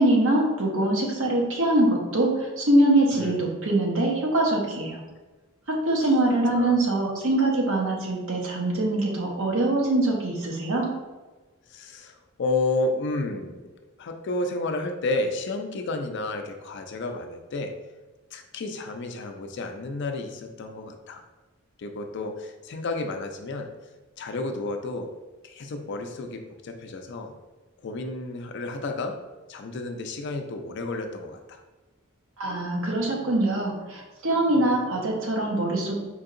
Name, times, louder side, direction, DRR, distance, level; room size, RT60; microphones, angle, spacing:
voice 1, 0.0-5.0 5.9-10.9 32.4-36.0, right 1 dB, 70° right, -1 dB, 0.9 m, -23 dB
voice 2, 11.7-13.7 14.0-17.7 18.3-21.2 21.8-23.7 24.2-25.1 25.4-27.3 27.8-29.1 29.5-31.6, left 2 dB, 55° left, 5 dB, 0.4 m, -31 dB
4.4 x 2.7 x 2.5 m, 1.2 s
head